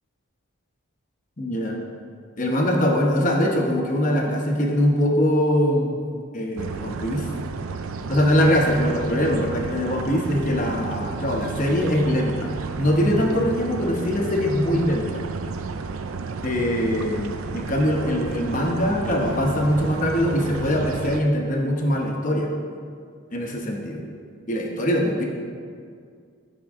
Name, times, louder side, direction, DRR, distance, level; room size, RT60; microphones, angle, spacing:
voice 1, 1.4-1.8 2.4-6.0 6.3-7.3 8.1-15.2 16.4-22.5 23.3-24.0 24.5-25.3, equal, 40° left, 1 dB, 1.0 m, -22 dB
sound 1, 6.6-21.2, right 4 dB, 80° right, 0.5 m, -32 dB
13.5 x 4.8 x 3.6 m, 2.1 s
head